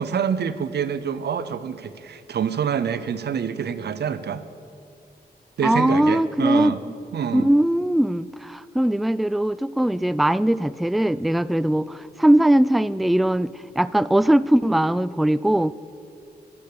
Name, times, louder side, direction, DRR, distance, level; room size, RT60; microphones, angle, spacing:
voice 1, 0.0-4.4 5.6-6.8 7.1-7.5, right 7 dB, 90° right, 14 dB, 0.7 m, -26 dB
voice 2, 5.6-6.8 7.3-15.7, right 1 dB, ahead, 18 dB, 0.4 m, -20 dB
24.0 x 8.3 x 6.9 m, 2.6 s
cardioid pair, 60°, 17 cm